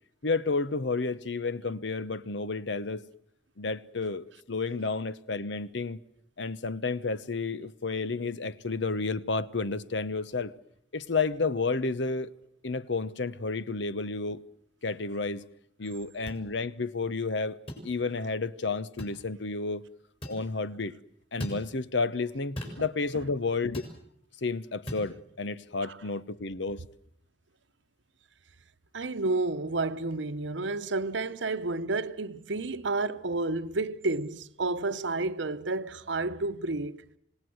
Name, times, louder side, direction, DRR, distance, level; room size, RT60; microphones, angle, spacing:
voice 1, 0.2-3.1 3.6-6.0 6.4-10.5 10.9-12.3 12.6-14.4 14.8-15.4 15.8-17.6 17.8-19.8 20.3-20.9 21.3-23.9 24.4-26.8, left 3 dB, 75° left, 0.9 m, -31 dB
sound 1, 16.3-16.4 17.7-17.9 19.0-19.2 20.2-20.4 21.4-21.6 22.6-22.8 23.7-24.0 24.9-25.1, equal, 30° left, 6.0 m, -37 dB
voice 2, 28.9-37.0, right 3 dB, 85° right, 1.0 m, -30 dB
27.0 x 18.0 x 7.9 m
head